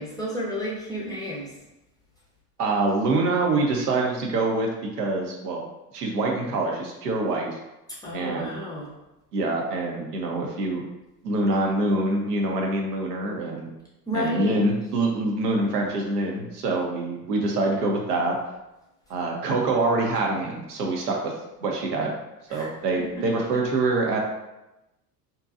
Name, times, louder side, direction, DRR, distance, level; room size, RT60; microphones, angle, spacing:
voice 1, 0.0-1.5 8.0-8.9 14.1-14.6 22.5-22.7 23.0-23.2, equal, 10° left, -6 dB, 0.5 m, -31 dB
voice 2, 2.6-5.6 5.9-7.6 8.1-8.6 9.3-10.8 11.2-13.7 14.1-18.4 19.1-21.3 21.6-22.1 22.5-24.2, right 2 dB, 75° right, 0 dB, 0.7 m, -25 dB
2.7 x 2.2 x 2.4 m, 0.95 s
figure-of-eight pair, 75°, 48 cm